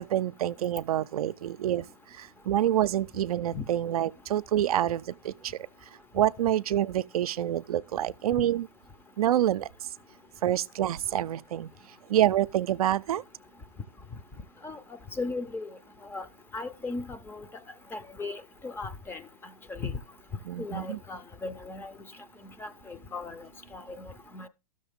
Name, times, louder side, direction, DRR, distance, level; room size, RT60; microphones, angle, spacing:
voice 1, 0.0-1.8 2.2-5.5 6.1-8.7 9.2-9.7 10.4-11.7 12.1-13.2 20.5-21.0, right 12 dB, 70° right, 0.4 m, -27 dB
voice 2, 15.2-15.7 16.1-16.3 16.5-17.4 17.9-19.2 19.7-19.9 20.6-21.9 22.6-23.5 23.7-24.5, left 3 dB, 10° left, 0.5 m, -37 dB
12.5 x 6.5 x 3.5 m
hypercardioid pair, 125°, 19 cm